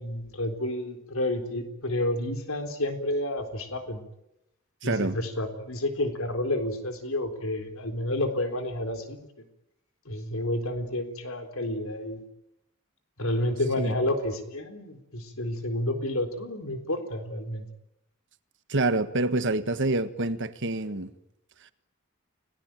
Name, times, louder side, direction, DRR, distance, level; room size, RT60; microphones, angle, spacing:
voice 1, 0.0-4.0 4.8-9.3 10.1-12.2 13.2-17.6, left 1 dB, 75° left, 3.9 m, -30 dB
voice 2, 4.8-5.2 13.8-13.9 18.7-21.1, right 2 dB, 60° right, 1.5 m, -27 dB
30.0 x 19.0 x 9.1 m
head